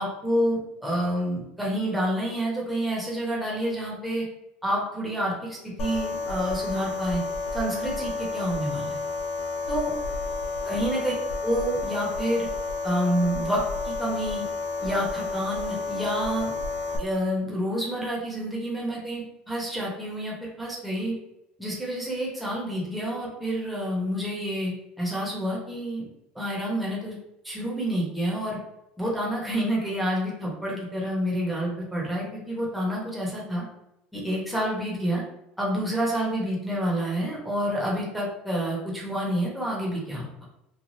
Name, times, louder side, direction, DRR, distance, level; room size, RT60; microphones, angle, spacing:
voice 1, 0.0-4.2 4.6-7.2 7.5-9.0 9.7-9.9 10.6-11.1 11.4-12.5 12.8-14.4 14.8-16.5 17.0-21.2 21.6-26.1 26.3-27.2 27.4-28.6 29.0-33.6 34.1-35.2 35.6-40.3, equal, ahead, -5 dB, 1.0 m, -28 dB
sound 1, 5.8-17.0, left 3 dB, 60° left, 0.6 m, -31 dB
3.2 x 2.3 x 2.6 m, 0.85 s
supercardioid pair, 110°, 4 cm